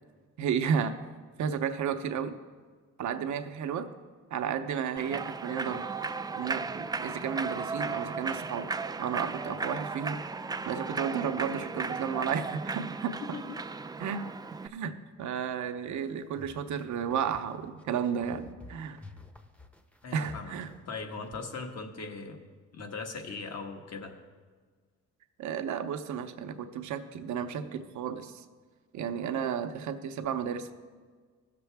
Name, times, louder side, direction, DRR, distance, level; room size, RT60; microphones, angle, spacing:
voice 1, 0.4-1.0 1.4-2.3 3.0-3.9 4.3-5.9 6.3-8.7 9.0-10.2 10.6-13.2 14.0-14.3 14.6-19.0 20.1-20.7 25.4-28.4 28.9-30.7, right 7 dB, 70° right, 7 dB, 0.8 m, -33 dB
Human voice / Clapping / Cheering, 5.0-14.7, right 4 dB, 15° right, 0.3 m, -36 dB
sound 1, 15.9-21.3, left 3 dB, 5° left, 0.8 m, -51 dB
voice 2, 20.0-20.5 20.9-22.4 22.7-24.1, left 4 dB, 55° left, 3 dB, 1.5 m, -39 dB
16.5 x 6.8 x 3.4 m, 1.5 s
cardioid pair, 90°, 30 cm